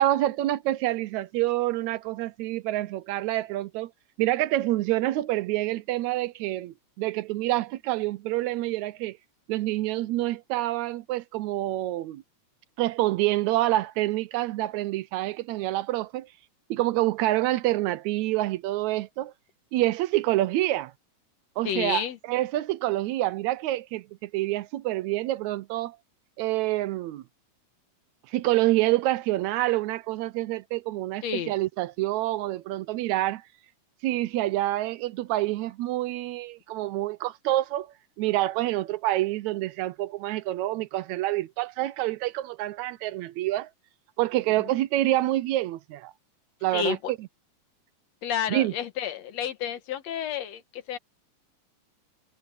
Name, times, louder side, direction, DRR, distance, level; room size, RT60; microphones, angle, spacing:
voice 1, 0.0-3.9 4.2-9.2 9.5-12.2 12.8-16.3 16.7-19.3 19.7-20.9 21.6-26.0 26.4-27.2 28.3-33.4 34.0-37.9 38.2-43.7 44.2-46.1 46.6-47.0 48.5-48.7, right 16 dB, 80° right, 1.9 m, -27 dB
voice 2, 21.6-22.2 31.2-31.5 44.6-44.7 46.7-47.1 48.2-51.0, left 9 dB, 65° left, 2.3 m, -30 dB
omnidirectional pair, 3.4 m